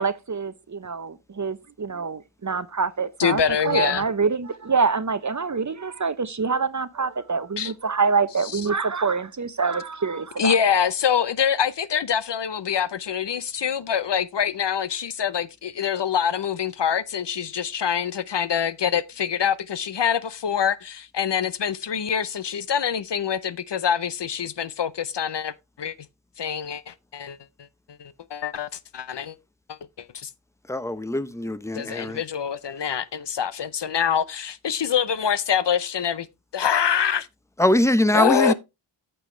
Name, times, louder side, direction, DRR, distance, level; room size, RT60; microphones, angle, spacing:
voice 1, 0.0-10.8, right 5 dB, 35° right, 0.7 m, -26 dB
voice 2, 3.2-4.0 7.6-7.7 8.5-8.6 10.4-25.9 26.4-27.4 28.0-28.7 28.9-29.4 29.7-30.3 31.7-36.3 36.5-37.3 38.1-38.5, left 8 dB, 60° left, 0.7 m, -25 dB
voice 3, 30.7-32.2 37.6-38.5, left 1 dB, 5° left, 0.6 m, -22 dB
8.7 x 7.0 x 3.1 m
cardioid pair, 45°, 49 cm